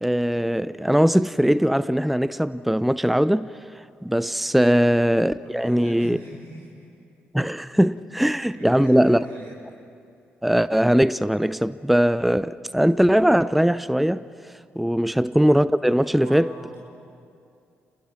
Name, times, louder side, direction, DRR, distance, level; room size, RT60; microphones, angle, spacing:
voice 1, 0.0-3.5 3.7-6.2 7.3-9.3 10.4-14.2 14.8-16.5, equal, ahead, 0.5 m, -20 dB
voice 2, 5.4-6.9 8.3-9.5 16.1-16.8, right 1 dB, 85° right, 6.1 m, -42 dB
29.0 x 20.5 x 5.9 m
hypercardioid pair, 40°, 6 cm